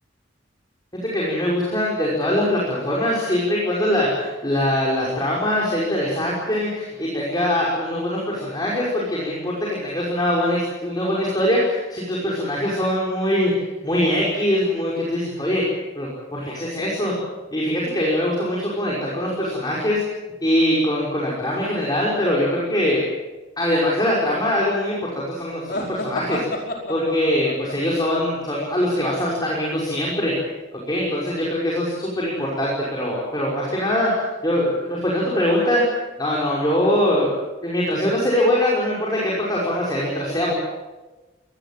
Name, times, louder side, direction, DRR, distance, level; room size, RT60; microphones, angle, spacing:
voice 1, 1.0-13.5 13.8-15.6 15.9-17.1 17.5-20.0 20.4-23.0 23.6-26.4 26.9-30.3 30.7-34.1 34.4-37.3 37.6-40.5, left 1 dB, 20° left, -4 dB, 5.6 m, -22 dB
sound 1, 25.7-29.4, left 2 dB, 55° left, 4.9 m, -32 dB
24.5 x 20.5 x 7.6 m, 1.2 s
head